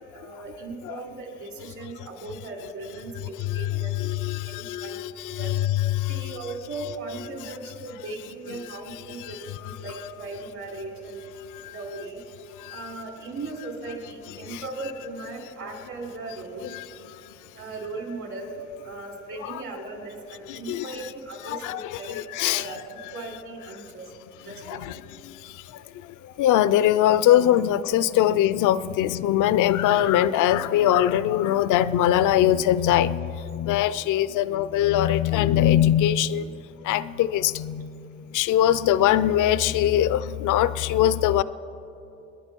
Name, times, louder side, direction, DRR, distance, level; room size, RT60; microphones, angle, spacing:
voice 1, 0.1-4.0 4.4-5.0 5.4-5.5 6.1-11.2 11.7-12.2 12.7-16.7 17.5-18.5 18.8-22.2 22.5-22.8 23.1-24.1 24.4-24.8, right 2 dB, 70° right, 1 dB, 4.1 m, -37 dB
voice 2, 3.4-5.6 5.9-6.3 9.2-9.8 11.5-11.7 12.6-12.8 14.5-14.6 16.7-16.8 19.4-19.6 20.5-20.9 21.5-22.0 22.3-22.7 24.7-24.9 25.2-36.5 36.8-37.9 38.3-41.4, left 11 dB, 85° left, 16 dB, 0.5 m, -22 dB
28.0 x 10.5 x 4.5 m, 2.9 s
cardioid pair, 90°, 30 cm